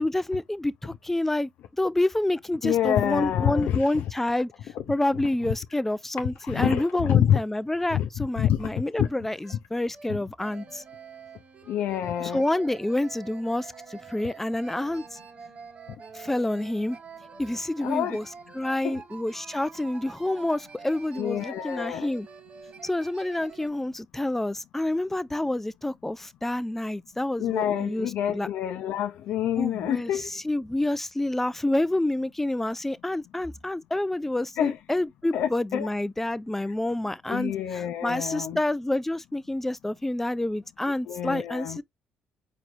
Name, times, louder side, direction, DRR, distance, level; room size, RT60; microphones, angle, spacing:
voice 1, 0.0-1.5 1.8-10.8 12.2-15.2 16.1-17.0 17.4-18.3 18.5-22.3 22.8-28.5 29.6-41.8, left 1 dB, 10° left, 0.4 m, -28 dB
voice 2, 2.6-4.0 6.4-7.4 7.9-9.1 10.1-10.2 11.7-12.4 17.8-18.2 18.8-19.0 21.2-22.1 27.4-30.3 34.6-34.8 35.3-35.9 37.3-38.6 41.1-41.8, left 10 dB, 75° left, 0.5 m, -27 dB
sound 1, 9.1-9.2 9.4-9.6 9.9-10.1 10.4-23.7, right 6 dB, 45° right, 0.9 m, -46 dB
4.6 x 3.0 x 2.5 m
cardioid pair, 85°, 3 cm